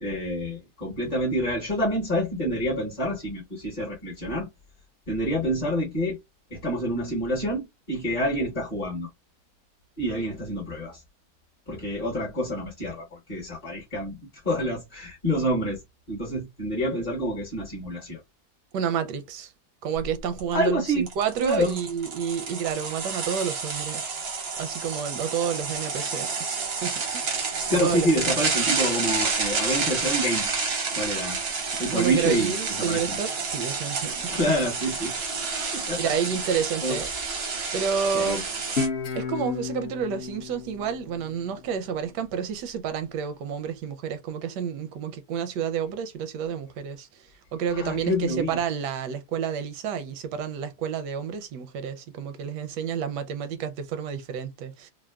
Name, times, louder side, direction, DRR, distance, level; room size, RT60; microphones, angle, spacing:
voice 1, 0.0-4.5 5.1-6.2 6.5-9.1 10.0-11.0 11.7-14.2 14.4-15.8 16.1-18.2 20.5-21.0 21.4-21.8 27.7-31.4 31.8-32.5 32.8-33.2 34.3-35.1 35.7-36.1 36.8-37.0 38.1-38.4 47.7-48.6, equal, 30° left, 0.8 m, -27 dB
voice 2, 18.7-19.5 19.8-24.2 24.6-26.3 26.8-28.1 31.9-34.4 36.0-37.1 37.7-38.4 39.1-47.1 47.5-54.9, right 7 dB, 85° right, 1.2 m, -30 dB
sound 1, 20.0-20.1 20.4-20.5 21.1-38.9, right 4 dB, 60° right, 0.7 m, -30 dB
Guitar, 38.8-42.0, left 5 dB, 65° left, 0.6 m, -32 dB
3.4 x 2.0 x 2.2 m
omnidirectional pair, 1.8 m